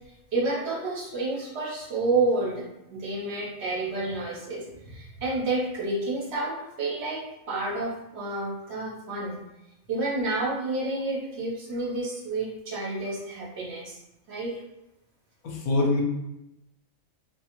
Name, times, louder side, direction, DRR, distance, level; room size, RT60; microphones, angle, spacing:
voice 1, 0.3-9.4 9.9-14.0 14.3-14.5, right 2 dB, 60° right, -4 dB, 0.8 m, -30 dB
voice 2, 15.4-16.0, left 2 dB, 85° left, 1 dB, 1.0 m, -24 dB
2.5 x 2.4 x 2.8 m, 0.91 s
omnidirectional pair, 1.4 m